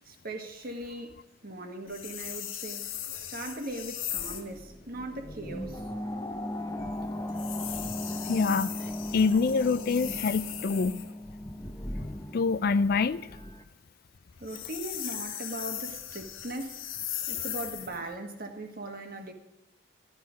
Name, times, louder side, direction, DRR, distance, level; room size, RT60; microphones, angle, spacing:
voice 1, 0.0-1.2 1.4-3.0 3.3-5.8 14.4-16.8 17.3-19.3, right 1 dB, 50° right, 1.6 m, -39 dB
sound 1, 1.9-4.5 7.3-11.1 14.3-18.0, left 10 dB, 90° left, 1.3 m, -38 dB
sound 2, 4.0-13.6, left 1 dB, 15° left, 0.8 m, -37 dB
voice 2, 8.3-8.7 9.1-11.0 12.3-13.2, left 4 dB, 50° left, 0.4 m, -25 dB
14.0 x 11.0 x 5.1 m
head